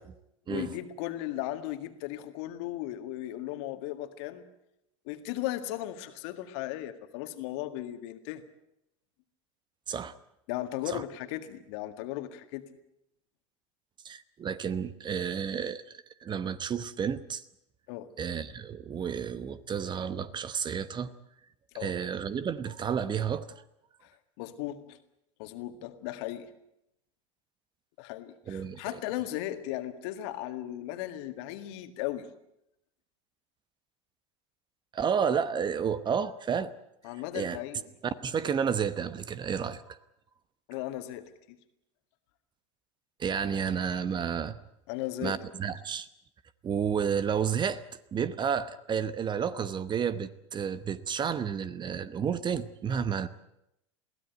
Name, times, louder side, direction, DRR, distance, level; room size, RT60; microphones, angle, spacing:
voice 1, 0.5-4.4 5.1-8.4 10.5-12.6 17.9-18.1 21.8-21.9 24.0-25.0 25.4-26.5 28.0-32.3 37.0-37.8 40.7-41.6 44.9-45.4, left 14 dB, 60° left, 9 dB, 1.9 m, -36 dB
voice 2, 14.0-15.8 16.2-17.4 18.2-21.1 21.8-23.5 28.5-29.0 34.9-36.7 37.3-37.6 38.0-40.0 43.2-44.6 45.2-46.1 46.6-47.8 48.1-53.3, right 7 dB, 30° right, 15 dB, 1.1 m, -31 dB
22.0 x 16.5 x 9.3 m, 0.82 s
hypercardioid pair, 85°, 16 cm